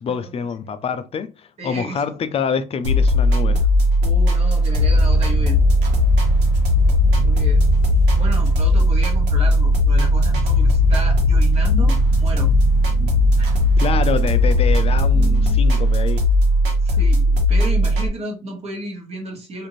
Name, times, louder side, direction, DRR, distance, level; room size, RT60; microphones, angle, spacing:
voice 1, 0.0-3.7 13.8-16.3, left 6 dB, 35° left, 0.4 m, -26 dB
voice 2, 1.6-2.2 4.0-5.6 7.2-7.6 8.1-12.5 13.4-13.6 15.7-15.8 16.8-19.7, right 1 dB, 40° right, 1.3 m, -33 dB
sound 1, 2.8-18.1, left 1 dB, 90° right, 1.1 m, -17 dB
sound 2, 4.8-15.6, left 1 dB, 15° left, 1.2 m, -25 dB
2.6 x 2.5 x 3.1 m
cardioid pair, 110°, 17 cm